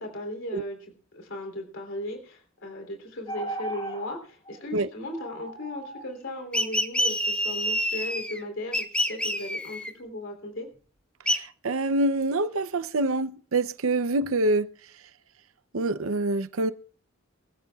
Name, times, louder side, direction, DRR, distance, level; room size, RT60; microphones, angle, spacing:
voice 1, 0.0-10.7, left 1 dB, 65° left, 3.5 m, -37 dB
sound 1, 3.3-4.1 4.4-4.6 5.1-6.1, right 1 dB, 25° left, 6.6 m, -36 dB
sound 2, 6.5-8.4 8.7-9.9 11.3-11.4, equal, 5° left, 1.6 m, -27 dB
voice 2, 11.3-14.7 15.7-16.7, right 2 dB, 85° right, 0.7 m, -26 dB
23.5 x 14.5 x 2.4 m
head